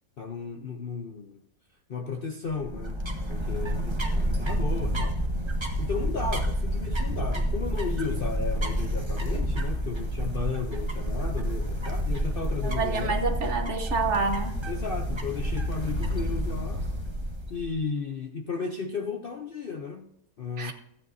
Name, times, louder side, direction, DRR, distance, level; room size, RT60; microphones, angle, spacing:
voice 1, 0.2-1.4 1.9-3.0 3.3-5.2 5.8-13.3 14.7-16.8 17.5-20.7, left 5 dB, 50° left, 0.7 m, -34 dB
sound 1, 2.5-17.7, equal, 20° right, 1.1 m, -29 dB
voice 2, 12.6-14.6 20.6-20.7, right 4 dB, 50° right, 1.3 m, -28 dB
15.0 x 8.8 x 2.7 m
omnidirectional pair, 1.7 m